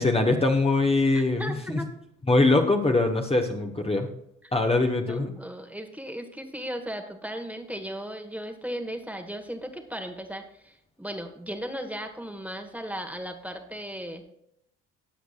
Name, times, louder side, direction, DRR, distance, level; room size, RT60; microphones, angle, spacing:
voice 1, 0.0-1.8 2.3-4.1 4.5-5.3, left 2 dB, 15° left, 2 dB, 1.4 m, -22 dB
voice 2, 1.1-1.9 4.4-4.5 5.1-14.2, equal, 5° right, 5 dB, 1.6 m, -36 dB
19.0 x 8.0 x 2.5 m, 0.75 s
figure-of-eight pair, 55°, 34 cm